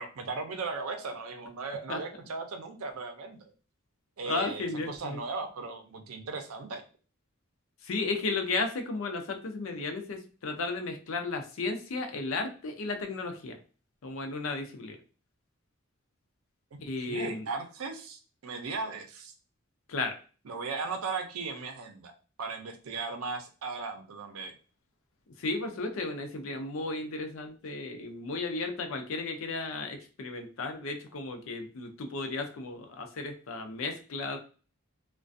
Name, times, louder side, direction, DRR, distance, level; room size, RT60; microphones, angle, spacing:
voice 1, 0.0-3.5 4.2-6.8 17.1-19.3 20.4-22.1 22.4-24.5, right 4 dB, 85° right, 6 dB, 0.5 m, -37 dB
voice 2, 4.2-5.2 7.8-13.6 14.0-15.0 16.8-17.5 19.9-20.2 25.4-34.4, left 3 dB, 70° left, 6 dB, 0.5 m, -34 dB
2.4 x 2.2 x 2.5 m, 0.37 s
head